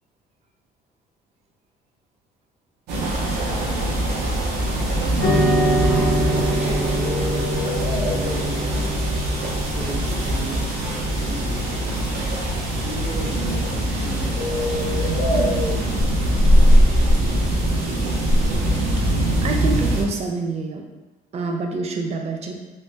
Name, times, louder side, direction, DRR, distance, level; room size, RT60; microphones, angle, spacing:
sound 1, 2.9-20.0, equal, 80° right, 0.6 m, -22 dB
voice 1, 4.7-5.1 5.8-9.2 9.6-14.6, right 1 dB, 10° right, -5 dB, 0.9 m, -36 dB
sound 2, 5.1-20.0, equal, 35° left, 1.1 m, -32 dB
sound 3, 5.2-13.7, equal, 65° left, 0.8 m, -26 dB
voice 2, 19.4-20.8 21.3-22.8, right 3 dB, 40° right, 3 dB, 0.4 m, -27 dB
3.1 x 2.1 x 2.7 m, 1.2 s
cardioid pair, 110°, 17 cm